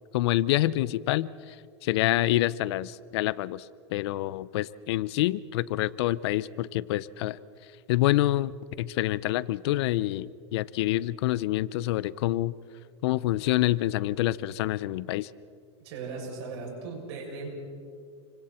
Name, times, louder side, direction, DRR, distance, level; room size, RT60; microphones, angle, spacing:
voice 1, 0.1-1.6 1.8-3.7 3.9-7.4 7.9-8.5 8.8-12.5 13.0-15.3, left 15 dB, 65° left, 19 dB, 0.7 m, -27 dB
voice 2, 15.8-17.5, right 4 dB, 65° right, 0 dB, 7.4 m, -37 dB
30.0 x 25.0 x 4.4 m, 2.3 s
supercardioid pair, 135°, 15 cm